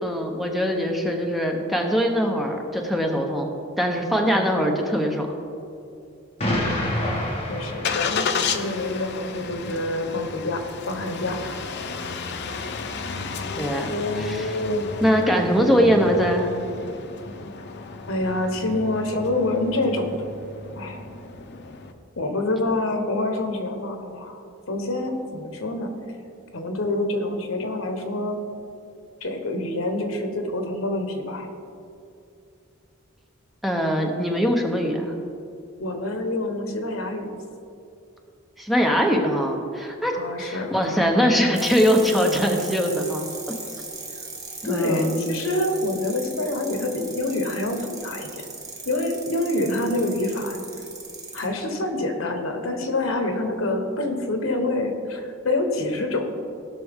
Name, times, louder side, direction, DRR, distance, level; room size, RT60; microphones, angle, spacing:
voice 1, 0.0-3.5 3.8-5.3 13.5-14.6 15.0-16.5 33.6-35.1 38.6-43.3 43.8-43.9 44.6-45.2, equal, ahead, 1 dB, 0.9 m, -22 dB
Explosion, 6.4-8.6, left 1 dB, 30° left, 1.7 m, -27 dB
Engine starting, 6.7-21.9, left 4 dB, 55° left, 0.6 m, -32 dB
voice 2, 7.5-11.6 18.1-20.2 20.8-21.0 22.2-25.9 26.5-28.4 29.2-31.5 35.8-37.3 40.1-40.7 44.6-48.4 48.8-50.6 51.3-56.3, left 2 dB, 75° left, 5 dB, 1.2 m, -26 dB
sound 1, 41.5-51.4, right 3 dB, 20° right, 1.4 m, -38 dB
16.5 x 6.0 x 3.6 m, 2.5 s
head